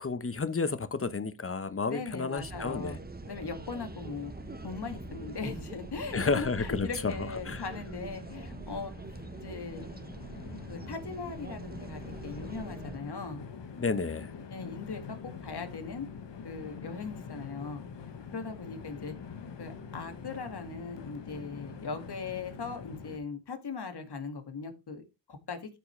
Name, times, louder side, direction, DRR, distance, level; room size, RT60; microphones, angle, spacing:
voice 1, 0.0-3.0 6.1-7.6 13.8-14.3, left 4 dB, 30° left, 1.0 m, -31 dB
voice 2, 1.9-3.0 3.3-4.3 4.6-8.9 9.4-9.9 10.7-13.5 14.5-16.1 16.4-17.8 18.3-19.1 19.6-25.0 25.3-25.6, left 4 dB, 65° left, 2.1 m, -39 dB
sound 1, 2.4-13.0, right 3 dB, 20° right, 1.0 m, -44 dB
Train, 3.2-23.2, left 6 dB, 85° left, 1.3 m, -46 dB
12.5 x 5.0 x 3.2 m
cardioid pair, 55°, 42 cm